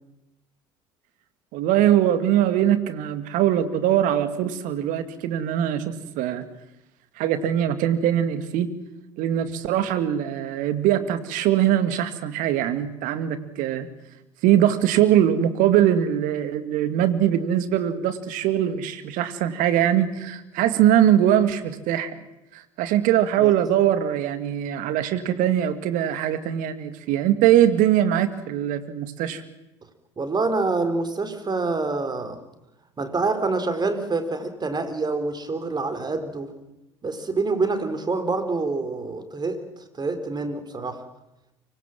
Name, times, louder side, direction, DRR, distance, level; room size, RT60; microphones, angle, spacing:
voice 1, 1.5-6.4 7.2-8.7 9.2-13.9 14.4-22.1 22.5-29.4, right 11 dB, 55° right, 11 dB, 2.3 m, -22 dB
voice 2, 30.2-32.4 33.0-36.5 37.0-39.6 39.9-41.0, right 3 dB, 25° right, 9 dB, 4.3 m, -26 dB
25.0 x 20.0 x 7.6 m, 0.92 s
figure-of-eight pair, 60°, 16 cm